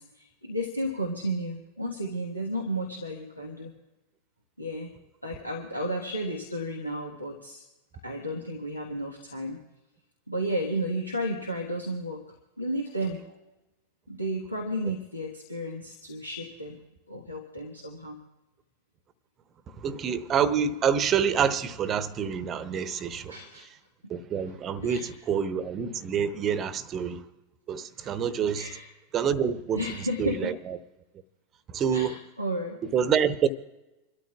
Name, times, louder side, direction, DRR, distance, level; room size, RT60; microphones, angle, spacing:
voice 1, 0.0-3.7 4.6-4.9 5.2-7.6 8.0-9.6 10.3-12.2 12.6-13.4 14.1-16.8 17.1-18.2 23.3-23.7 24.8-25.1 28.0-28.1 28.5-28.9 29.7-30.5 31.9-32.8, equal, 90° left, 1.4 m, -33 dB
voice 2, 19.8-23.4 24.1-27.2 27.7-28.7 29.1-29.8 30.2-30.8 31.7-32.1 32.9-33.5, right 7 dB, 30° right, 0.9 m, -27 dB
27.0 x 13.0 x 2.4 m
figure-of-eight pair, 90°, 0 cm